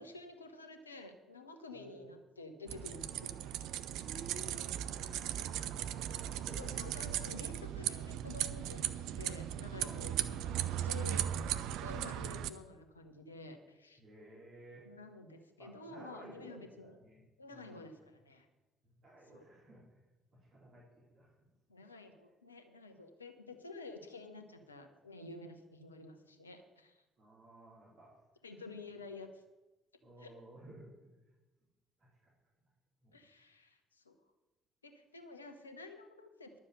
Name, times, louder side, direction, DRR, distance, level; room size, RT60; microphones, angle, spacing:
voice 1, 0.0-3.7 6.5-11.3 11.8-14.0 14.8-17.0 17.4-18.5 19.3-19.5 21.7-27.0 28.4-29.4 30.2-30.3 33.1-34.1 34.8-36.6, left 3 dB, 85° left, 6 dB, 0.9 m, -50 dB
voice 2, 1.7-2.1 3.9-4.6 4.8-7.0 9.8-10.2 14.0-14.9 15.6-17.2 17.5-17.9 19.0-19.8 20.3-21.3 27.2-28.1 30.0-31.1 32.0-32.3 33.0-33.1, right 2 dB, 45° right, -6 dB, 4.0 m, -55 dB
sound 1, 2.7-12.5, right 11 dB, 60° right, 0.5 m, -37 dB
12.0 x 7.3 x 6.8 m, 1.1 s
figure-of-eight pair, 50°, 0 cm